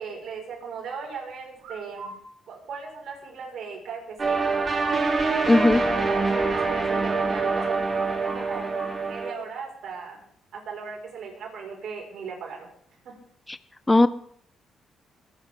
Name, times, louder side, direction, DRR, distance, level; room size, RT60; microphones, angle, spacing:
voice 1, 0.0-2.1 2.5-4.4 5.7-7.8 8.1-8.7 9.0-10.2 10.5-12.7 13.0-13.1, right 5 dB, 70° right, 0 dB, 5.5 m, -37 dB
sound 1, 1.6-2.2 4.5-7.2 7.5-7.7 7.9-8.9, right 4 dB, 90° right, 6.6 m, -40 dB
sound 2, 4.2-9.3, right 3 dB, 35° right, 3.7 m, -25 dB
voice 2, 5.5-5.8 13.5-13.6 13.9-14.1, left 2 dB, 15° left, 15 dB, 0.4 m, -17 dB
22.0 x 11.5 x 3.8 m, 0.66 s
cardioid pair, 90°, 0 cm